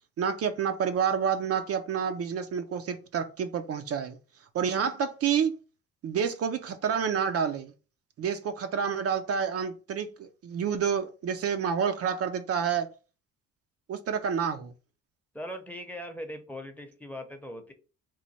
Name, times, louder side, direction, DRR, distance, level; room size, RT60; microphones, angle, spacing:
voice 1, 0.2-4.2 4.5-5.6 6.0-7.7 8.2-12.9 13.9-14.7, right 7 dB, 50° right, 0.4 m, -29 dB
voice 2, 15.3-17.7, equal, 5° left, 0.7 m, -40 dB
3.1 x 2.1 x 4.0 m
cardioid pair, 90°, 30 cm